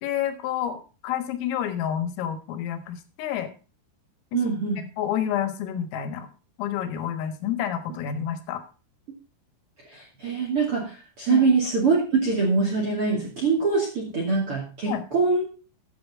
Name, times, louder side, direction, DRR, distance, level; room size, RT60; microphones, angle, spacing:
voice 1, 0.0-3.5 4.3-4.4 5.0-6.3 6.6-8.6 11.3-11.5 14.9-15.0, left 10 dB, 80° left, 10 dB, 4.0 m, -29 dB
voice 2, 4.3-4.8 9.8-15.4, right 4 dB, 40° right, 0 dB, 2.2 m, -24 dB
14.0 x 9.1 x 3.6 m, 0.34 s
omnidirectional pair, 5.9 m